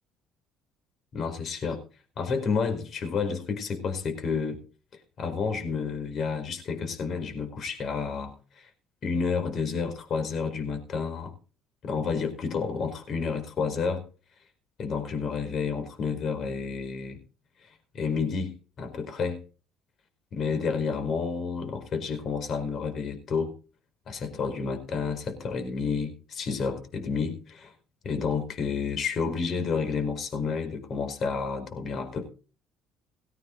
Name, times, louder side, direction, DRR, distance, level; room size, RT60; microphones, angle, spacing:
voice 1, 1.1-1.8 2.2-4.6 5.2-8.7 9.0-11.3 11.8-14.0 14.8-17.2 17.6-17.7 17.9-19.4 20.3-23.5 24.1-27.7 28.0-32.3, left 5 dB, 50° left, 7 dB, 4.7 m, -30 dB
18.5 x 9.2 x 4.0 m, 0.36 s
supercardioid pair, 95°, 0 cm